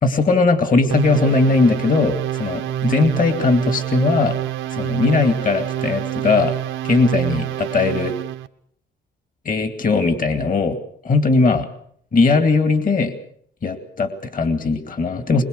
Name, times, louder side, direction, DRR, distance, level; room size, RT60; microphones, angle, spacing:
voice 1, 0.0-4.4 4.7-6.6 6.8-8.2 9.4-10.8 11.0-11.7 12.1-13.1 13.6-15.4, left 3 dB, 45° left, 9 dB, 2.4 m, -19 dB
sound 1, 0.9-8.5, right 12 dB, 85° right, 1.0 m, -26 dB
22.5 x 21.5 x 6.7 m, 0.64 s
cardioid pair, 90°, 20 cm